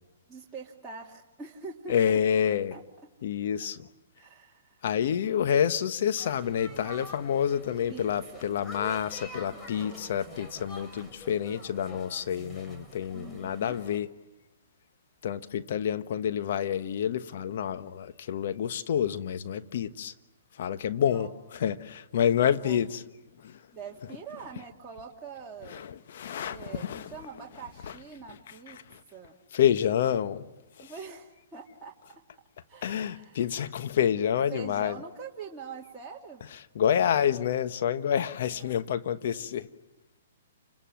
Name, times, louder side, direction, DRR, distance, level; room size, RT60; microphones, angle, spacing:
voice 1, 0.3-2.0 2.7-2.8 4.2-4.8 7.9-8.5 9.5-10.2 13.1-13.8 21.0-21.3 22.4-22.9 23.7-25.8 26.3-28.8 29.1-29.4 30.8-31.9 32.7-33.5 34.5-36.4 38.5-38.8 39.3-39.5, right 5 dB, 15° right, 2.7 m, -44 dB
voice 2, 1.9-2.7 3.2-3.9 4.8-14.1 15.2-20.1 20.6-21.3 21.6-23.0 23.4-23.6 25.7-27.1 28.9-29.0 29.5-30.4 30.8-30.9 32.8-35.0 36.7-39.7, left 9 dB, 60° left, 1.2 m, -28 dB
sound 1, 6.2-14.0, left 1 dB, 15° left, 3.3 m, -46 dB
29.5 x 26.0 x 7.7 m
hypercardioid pair, 130°, 0 cm